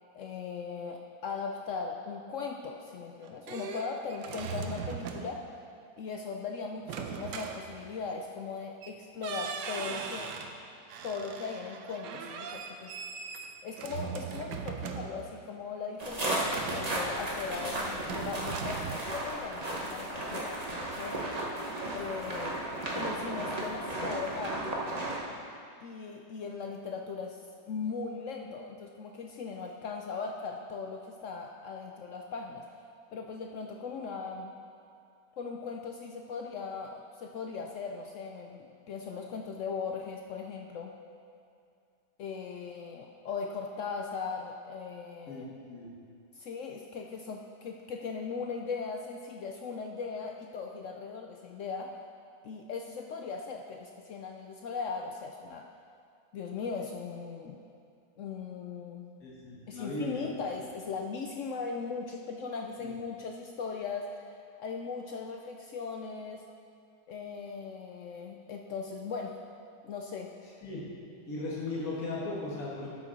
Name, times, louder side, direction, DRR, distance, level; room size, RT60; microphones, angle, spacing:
voice 1, 0.1-5.4 6.0-10.3 11.0-13.2 13.6-21.2 21.9-22.6 22.9-24.9 25.8-32.8 33.1-34.5 35.4-40.9 42.2-45.5 46.3-51.9 52.4-55.7 56.3-57.6 58.2-59.1 59.7-66.4 67.1-69.4 69.8-70.3, left 5 dB, 80° left, 2 dB, 0.6 m, -39 dB
sound 1, 3.0-5.5 6.8-8.2 8.8-9.0 9.2-10.6 10.9-15.4 16.4-17.6 18.0-19.0, right 6 dB, 75° right, 1.3 m, -40 dB
sound 2, 16.0-25.2, right 1 dB, 30° right, 0.9 m, -34 dB
voice 2, 45.3-45.9 59.2-60.4 62.8-62.9 70.6-70.8 71.3-72.9, left 2 dB, 55° left, -6 dB, 2.2 m, -37 dB
12.5 x 6.6 x 4.1 m, 2.4 s
omnidirectional pair, 1.9 m